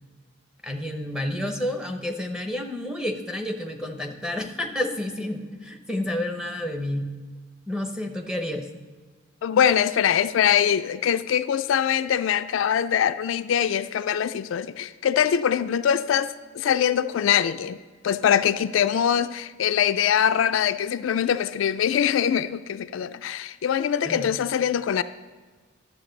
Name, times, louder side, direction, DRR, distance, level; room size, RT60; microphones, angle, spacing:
voice 1, 0.6-7.0 7.7-8.7 24.1-24.3, left 1 dB, 5° right, 3 dB, 0.7 m, -30 dB
voice 2, 9.4-17.8 18.0-25.0, left 9 dB, 75° left, 11 dB, 0.3 m, -23 dB
12.0 x 7.2 x 3.9 m, 1.4 s
head